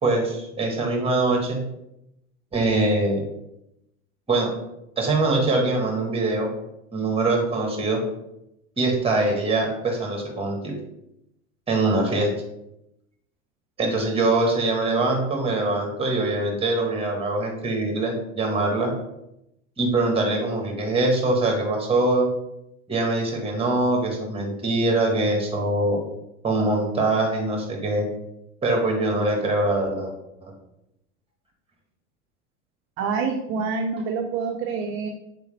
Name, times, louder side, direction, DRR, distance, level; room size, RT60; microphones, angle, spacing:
voice 1, 0.0-1.6 2.5-3.2 4.3-4.5 5.0-6.5 6.9-8.0 8.8-10.8 11.7-12.3 13.8-18.9 19.8-22.3 22.9-26.0 26.4-28.0 28.6-30.1, right 2 dB, 15° right, 2 dB, 1.2 m, -23 dB
voice 2, 33.0-35.1, right 5 dB, 35° right, 3 dB, 0.5 m, -26 dB
4.2 x 3.5 x 3.2 m, 0.85 s
hypercardioid pair, 90°, 42 cm